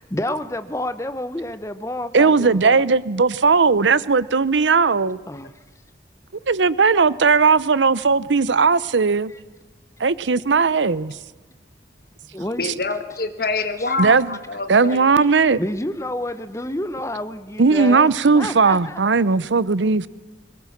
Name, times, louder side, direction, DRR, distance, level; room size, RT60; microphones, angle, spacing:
voice 1, 0.0-2.8 5.3-5.5 12.3-12.7 13.8-13.9 15.6-19.0, left 1 dB, 15° left, 1.0 m, -29 dB
voice 2, 2.1-5.2 6.5-9.3 10.0-11.2 12.6-12.7 14.0-14.4 14.7-15.6 17.6-20.1, right 4 dB, 90° right, 0.7 m, -17 dB
voice 3, 12.6-15.1, left 3 dB, 55° left, 1.6 m, -26 dB
22.0 x 19.0 x 7.3 m
head